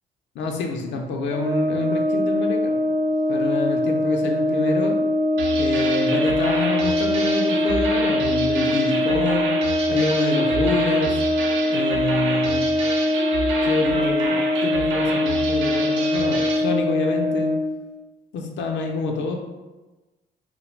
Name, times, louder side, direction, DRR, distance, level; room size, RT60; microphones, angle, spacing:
voice 1, 0.4-2.8 3.3-5.0 5.6-9.5 9.9-11.1 11.7-12.7 13.6-14.4 14.6-17.5 18.3-19.4, left 3 dB, 65° left, 2 dB, 0.4 m, -27 dB
Brass instrument, 1.3-17.7, left 1 dB, 20° right, 0.4 m, -22 dB
sound 1, 5.4-16.7, right 3 dB, 80° right, 0.5 m, -29 dB
2.2 x 2.1 x 3.0 m, 1.2 s
cardioid pair, 90°, 20 cm